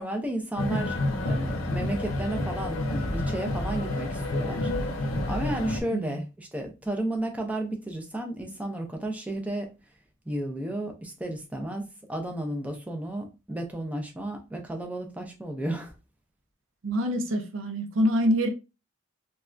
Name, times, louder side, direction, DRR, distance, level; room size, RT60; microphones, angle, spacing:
voice 1, 0.0-9.7 10.3-15.9, right 1 dB, 5° right, 0.4 m, -33 dB
sound 1, 0.6-5.8, left 1 dB, 90° left, 0.6 m, -29 dB
voice 2, 16.8-18.5, equal, 85° right, 0.5 m, -25 dB
3.2 x 2.2 x 2.5 m
head